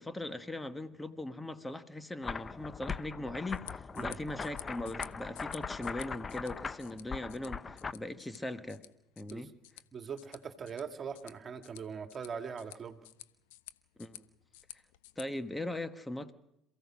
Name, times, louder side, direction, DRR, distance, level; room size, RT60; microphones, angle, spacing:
voice 1, 0.0-8.8 9.2-9.5 14.0-14.3 15.2-16.3, left 1 dB, 10° left, 10 dB, 1.3 m, -40 dB
sound 1, 2.2-7.9, left 5 dB, 30° left, 0.9 m, -40 dB
sound 2, 3.4-15.2, left 15 dB, 75° left, 1.0 m, -53 dB
voice 2, 9.9-13.0, right 6 dB, 40° right, 7 dB, 2.1 m, -41 dB
28.0 x 16.0 x 6.2 m, 0.87 s
hypercardioid pair, 65°, 0 cm